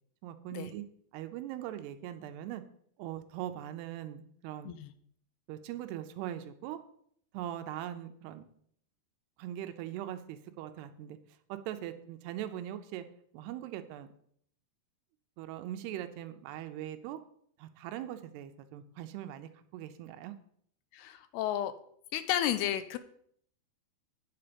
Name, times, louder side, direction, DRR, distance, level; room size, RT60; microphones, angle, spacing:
voice 1, 0.2-0.8 1.1-2.6 3.0-4.8 5.5-6.8 7.3-8.5 9.4-11.2 11.5-13.1 13.3-14.1 15.4-17.2 17.6-20.3, right 12 dB, 80° right, 9 dB, 2.7 m, -41 dB
voice 2, 20.9-21.8 22.1-23.0, left 12 dB, 80° left, 12 dB, 2.6 m, -32 dB
9.1 x 6.9 x 5.2 m, 0.65 s
omnidirectional pair, 4.8 m